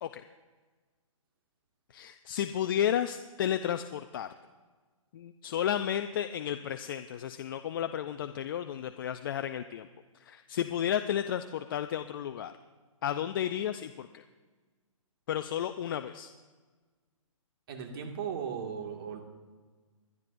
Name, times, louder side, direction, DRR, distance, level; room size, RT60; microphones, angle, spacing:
voice 1, 1.9-4.3 5.1-9.9 10.2-12.5 13.0-14.2 15.3-16.3, left 10 dB, 40° left, 9 dB, 0.5 m, -32 dB
voice 2, 17.7-19.2, right 7 dB, 45° right, 2 dB, 2.0 m, -37 dB
24.0 x 11.0 x 2.6 m, 1.4 s
hypercardioid pair, 150°, 17 cm